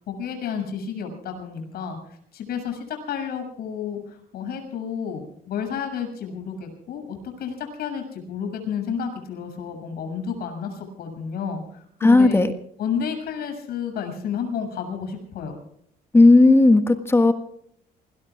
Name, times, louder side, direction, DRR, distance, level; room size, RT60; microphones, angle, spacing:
voice 1, 0.0-12.4 12.8-15.6, left 7 dB, 65° left, 4 dB, 7.2 m, -31 dB
voice 2, 12.0-12.5 16.1-17.3, left 2 dB, 15° left, 7 dB, 1.7 m, -14 dB
27.5 x 22.0 x 2.4 m, 0.68 s
cardioid pair, 110°, 17 cm